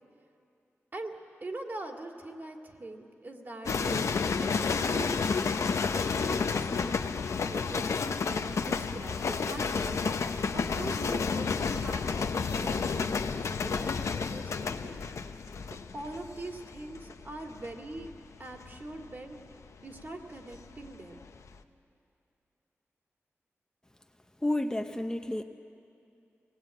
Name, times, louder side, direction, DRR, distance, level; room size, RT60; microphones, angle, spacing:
voice 1, 1.4-4.1 4.4-6.9 7.5-10.1 10.5-15.0 15.9-18.1 18.4-19.4 19.8-21.2, right 2 dB, 40° right, 3 dB, 2.2 m, -42 dB
sound 1, 3.6-20.9 21.2-21.6, left 5 dB, 85° left, 0.8 m, -31 dB
voice 2, 24.4-25.4, left 1 dB, 15° left, 5 dB, 0.7 m, -30 dB
24.5 x 19.0 x 9.0 m, 2.5 s
wide cardioid pair, 110°, 5 cm